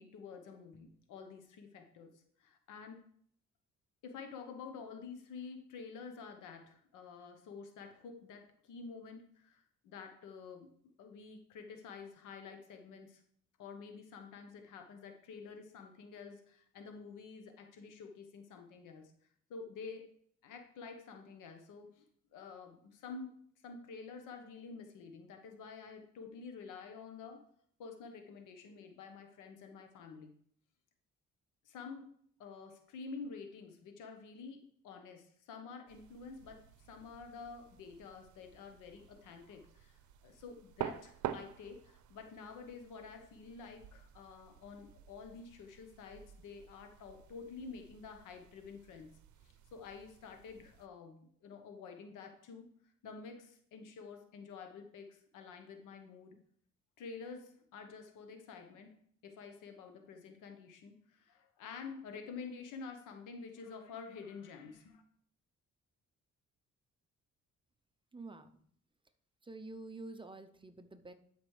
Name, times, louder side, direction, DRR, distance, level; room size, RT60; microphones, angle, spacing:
voice 1, 0.0-3.0 4.0-10.7 11.0-13.2 13.6-19.1 19.5-20.1 20.4-22.0 22.3-27.4 27.8-30.3 31.6-32.1 32.4-49.1 49.4-52.7 53.0-56.4 57.0-59.0 59.2-65.0, left 5 dB, 90° left, 6 dB, 1.1 m, -49 dB
sound 1, 35.9-50.9, right 11 dB, 75° right, 0.6 m, -49 dB
voice 2, 68.1-68.6 69.4-71.1, right 2 dB, 15° right, 9 dB, 0.6 m, -48 dB
12.0 x 5.2 x 3.3 m, 0.63 s
cardioid pair, 90°, 30 cm